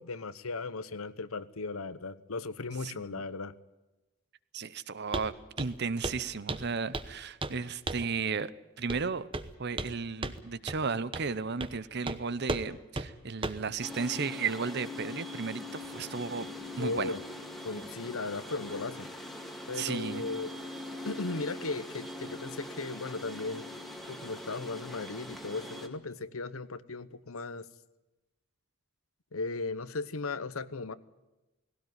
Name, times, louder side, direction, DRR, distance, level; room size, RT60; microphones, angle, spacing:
voice 1, 0.0-3.5 16.8-17.2 17.6-19.1 19.7-20.5 21.0-23.6 24.1-27.7 29.3-30.9, left 3 dB, 85° left, 1.0 m, -37 dB
voice 2, 2.8-3.2 4.5-8.5 8.8-9.3 9.6-16.5 16.8-17.1 19.8-20.2, right 5 dB, 50° right, 0.8 m, -34 dB
Walk footsteps, 5.1-5.3 5.6-5.8 6.0-6.2 6.5-7.1 7.4-7.6 7.9-8.1 8.9-9.1 9.3-9.9 10.2-10.4 10.7-10.8 11.1-11.3 11.6-11.8 12.1-12.2 12.5-12.7 13.0-13.1 13.4-13.7, right 2 dB, 25° right, 1.0 m, -35 dB
sound 1, 13.8-25.9, left 1 dB, ahead, 2.0 m, -42 dB
19.0 x 17.0 x 9.6 m
head